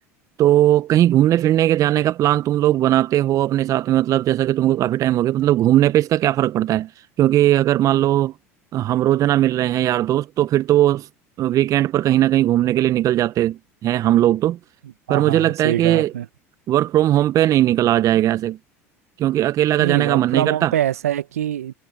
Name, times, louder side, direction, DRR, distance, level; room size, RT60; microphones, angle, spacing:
voice 1, 0.4-6.9 7.2-8.3 8.7-11.1 11.4-14.6 15.1-16.1 16.7-18.6 19.2-20.7, right 13 dB, 45° right, 0.9 m, -18 dB
voice 2, 15.1-16.3 19.8-21.7, right 11 dB, 80° right, 1.5 m, -24 dB
hypercardioid pair, 75°, 8 cm